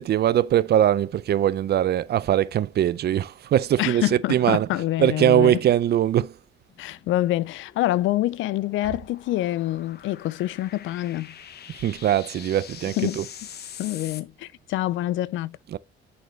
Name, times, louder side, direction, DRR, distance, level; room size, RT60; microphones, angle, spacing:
voice 1, 0.0-6.4 11.8-13.3 15.7-15.8, right 11 dB, 55° right, 0.5 m, -21 dB
voice 2, 3.8-5.6 6.8-11.4 13.0-13.2 13.8-15.6, left 15 dB, 80° left, 0.4 m, -26 dB
sound 1, 6.7-14.2, left 9 dB, 55° left, 0.7 m, -44 dB
9.3 x 4.2 x 3.1 m
cardioid pair, 90°, 20 cm